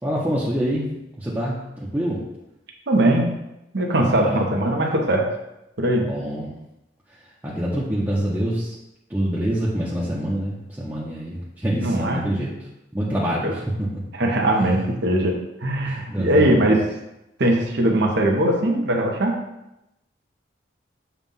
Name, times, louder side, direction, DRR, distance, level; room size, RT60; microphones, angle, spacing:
voice 1, 0.0-0.9 1.2-2.2 4.0-4.5 6.0-6.5 7.4-8.7 9.1-12.5 12.9-13.6 13.9-14.0 14.6-14.8 15.8-16.7, equal, 10° right, -8 dB, 0.8 m, -26 dB
voice 2, 2.9-3.3 3.7-5.2 5.8-6.0 11.8-12.2 13.4-13.5 14.1-15.4 15.6-16.8 17.4-19.4, right 1 dB, 65° right, 1 dB, 1.0 m, -20 dB
7.2 x 2.4 x 5.5 m, 0.90 s
head